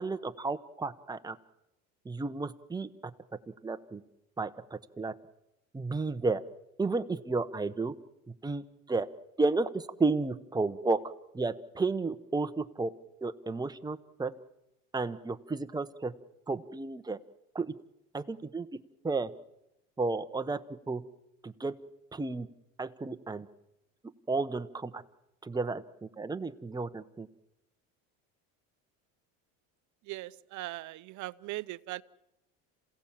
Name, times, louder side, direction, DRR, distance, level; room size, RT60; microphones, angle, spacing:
voice 1, 0.0-1.4 2.0-2.9 3.6-4.0 4.4-5.1 5.7-6.4 6.8-7.9 8.4-9.1 9.4-11.0 11.3-12.9 13.2-14.3 14.9-16.1 16.5-17.2 17.5-17.7 18.1-18.7 19.0-19.3 20.0-20.6 20.9-21.0 21.4-21.7 22.1-22.5 22.8-23.5 24.3-25.0 25.4-27.3, right 3 dB, 10° right, 9 dB, 1.0 m, -32 dB
voice 2, 30.0-32.0, right 17 dB, 50° right, 16 dB, 0.7 m, -39 dB
27.5 x 16.5 x 7.4 m, 0.89 s
supercardioid pair, 110°, 38 cm